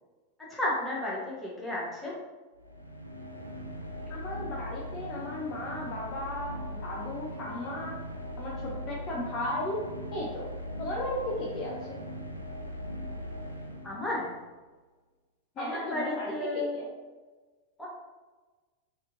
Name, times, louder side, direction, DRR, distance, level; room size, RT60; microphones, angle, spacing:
voice 1, 0.4-2.1 13.8-14.3 15.6-16.7 17.8-17.9, left 1 dB, 10° left, -6 dB, 1.2 m, -33 dB
sound 1, 2.6-14.4, equal, 90° left, 0.4 m, -40 dB
voice 2, 4.1-8.0 8.4-8.5 8.9-9.8 10.1-10.5 10.8-12.0 15.6-16.9, left 1 dB, 35° left, -3 dB, 0.6 m, -35 dB
4.1 x 3.0 x 2.7 m, 1.3 s
figure-of-eight pair, 90°, 0 cm